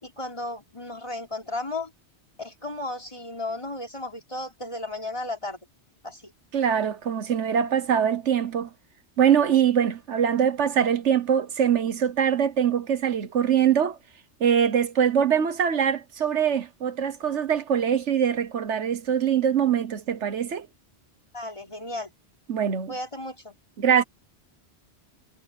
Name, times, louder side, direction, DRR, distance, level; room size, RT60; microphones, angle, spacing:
voice 1, 0.0-1.9 2.4-5.6 6.0-6.3 21.3-22.1 22.9-23.5, left 2 dB, 25° left, 3.8 m, -34 dB
voice 2, 6.5-8.7 9.2-14.0 14.4-20.7 22.5-22.9 23.8-24.0, right 8 dB, 80° right, 1.4 m, -23 dB
omnidirectional pair, 1.2 m